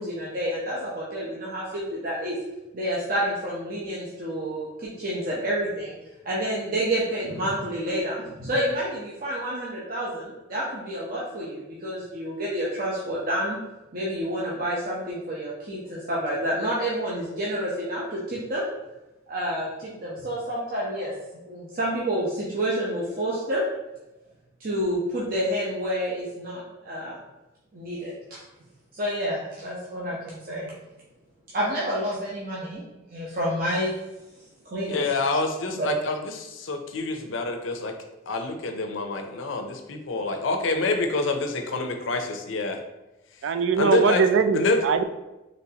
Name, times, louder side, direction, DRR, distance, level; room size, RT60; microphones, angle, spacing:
voice 1, 0.0-2.3 2.7-5.9 6.2-13.6 13.9-18.6 19.3-21.1 21.5-23.6 24.6-27.2 27.7-28.4 28.9-30.7 31.5-32.8 33.1-33.9 34.6-35.1 35.8-35.9, equal, 50° right, -6 dB, 0.8 m, -29 dB
voice 2, 34.9-37.9 38.3-42.8 43.8-44.2 44.5-44.8, left 3 dB, 90° left, 5 dB, 0.6 m, -27 dB
voice 3, 43.4-45.0, right 6 dB, 75° right, 9 dB, 0.3 m, -21 dB
4.1 x 3.3 x 2.8 m, 1.0 s
head